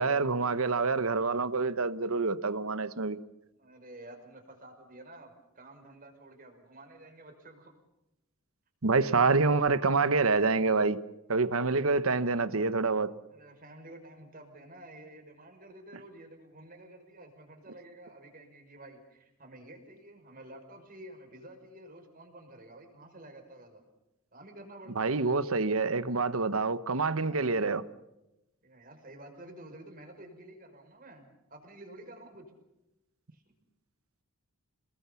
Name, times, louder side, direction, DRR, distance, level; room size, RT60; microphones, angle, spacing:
voice 1, 0.0-3.2 8.8-11.0 11.3-13.1 24.9-27.8, right 4 dB, 75° right, 1.1 m, -27 dB
voice 2, 3.5-7.7 13.3-23.8 24.3-25.2 27.2-27.4 28.6-32.5 33.3-33.4, right 1 dB, 40° right, 5.6 m, -50 dB
28.5 x 20.5 x 7.1 m
head